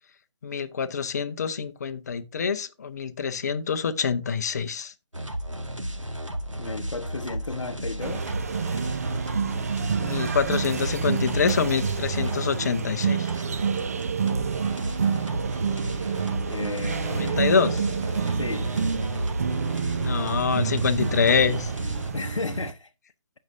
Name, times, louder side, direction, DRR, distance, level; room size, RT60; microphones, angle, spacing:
voice 1, 0.4-4.9 10.0-13.3 17.1-17.8 20.0-21.7, left 6 dB, 35° left, 0.7 m, -26 dB
sound 1, 5.1-22.1, right 1 dB, 90° right, 1.8 m, -33 dB
voice 2, 6.6-8.3 16.5-17.5 18.3-18.7 22.1-22.9, left 3 dB, 80° left, 0.7 m, -34 dB
sound 2, 8.0-22.7, right 6 dB, 30° right, 0.4 m, -28 dB
15.0 x 5.5 x 2.6 m
figure-of-eight pair, 150°, 16 cm